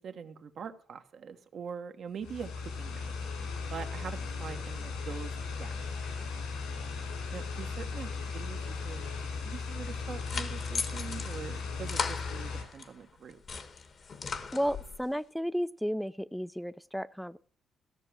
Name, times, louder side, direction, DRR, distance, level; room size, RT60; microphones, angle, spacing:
voice 1, 0.0-3.1 3.7-5.7 7.3-9.1 9.4-13.4, right 6 dB, 60° right, 8 dB, 1.2 m, -43 dB
sound 1, 2.2-12.6, left 4 dB, 85° left, 3.4 m, -37 dB
sound 2, 9.9-12.9 13.3-15.0, left 5 dB, 45° left, 1.2 m, -38 dB
voice 2, 14.5-17.4, equal, ahead, 17 dB, 0.5 m, -33 dB
14.5 x 6.8 x 6.2 m, 0.44 s
cardioid pair, 90°, 0 cm